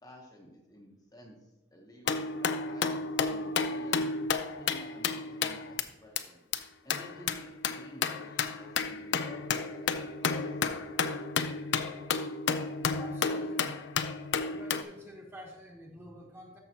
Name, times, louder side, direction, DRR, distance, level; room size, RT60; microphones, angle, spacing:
voice 1, 0.0-4.1 4.6-6.5 6.8-10.6, equal, 20° left, -1 dB, 0.9 m, -53 dB
sound 1, 2.1-5.8 6.2-6.3 6.5-6.6 6.9-14.8, left 5 dB, 55° left, 0.5 m, -32 dB
voice 2, 12.9-13.8 14.4-16.6, equal, 10° right, 0 dB, 1.2 m, -48 dB
13.5 x 5.5 x 2.8 m, 1.0 s
head